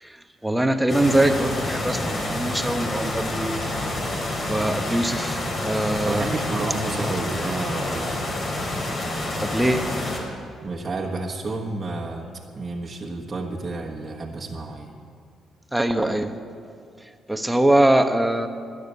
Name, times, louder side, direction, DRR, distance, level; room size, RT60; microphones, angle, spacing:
voice 1, 0.0-3.6 4.5-6.3 9.4-9.9 15.7-16.3 17.3-18.5, right 1 dB, 5° right, 7 dB, 1.1 m, -22 dB
sound 1, 0.9-10.2, left 1 dB, 45° left, 4.6 m, -28 dB
voice 2, 6.0-8.2 10.6-14.9, right 2 dB, 35° right, -2 dB, 1.4 m, -30 dB
13.0 x 11.0 x 8.3 m, 2.2 s
cardioid pair, 90°, 0 cm